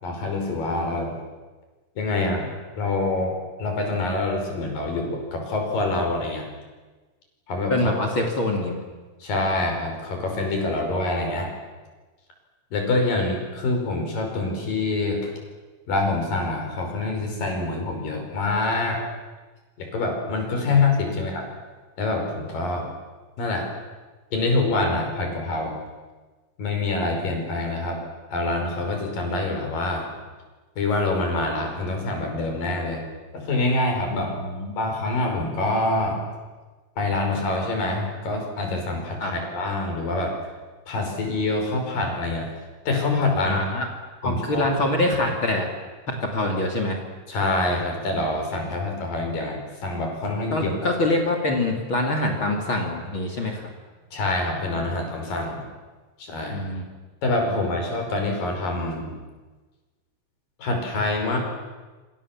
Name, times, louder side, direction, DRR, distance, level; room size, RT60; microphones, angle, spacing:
voice 1, 0.0-1.2 2.0-2.5 2.8-6.4 7.5-7.9 9.2-11.5 12.7-15.3 15.9-19.0 19.8-21.5 22.0-22.9 23.4-23.7 24.3-25.8 26.6-28.0 28.3-30.1 30.8-33.1 33.3-34.4 34.8-36.3 37.0-40.4 40.9-42.5 42.9-43.6 44.2-44.7 47.3-50.8 54.1-55.6 56.2-56.7 57.2-59.2 60.6-61.4, left 2 dB, 80° left, 3 dB, 6.9 m, -25 dB
voice 2, 7.7-8.8 20.7-20.8 34.1-34.8 39.2-39.3 43.4-43.9 44.2-45.7 46.1-47.0 50.5-53.6 56.5-56.9 57.5-57.6, left 1 dB, 40° left, 1 dB, 3.3 m, -25 dB
27.0 x 26.0 x 7.5 m, 1.3 s
omnidirectional pair, 3.9 m